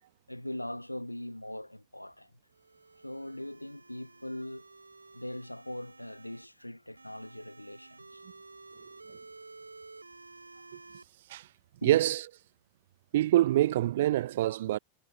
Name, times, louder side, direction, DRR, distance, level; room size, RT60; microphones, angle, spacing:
voice 1, 0.3-2.3 3.0-4.7 5.1-8.2 11.8-12.0, left 1 dB, 90° left, 1.0 m, -41 dB
sound 1, 2.5-6.5 7.0-11.0, right 3 dB, 80° right, 3.6 m, -52 dB
voice 2, 11.8-12.2 13.1-14.8, right 14 dB, 55° right, 0.8 m, -25 dB
figure-of-eight pair, 90°, 0 cm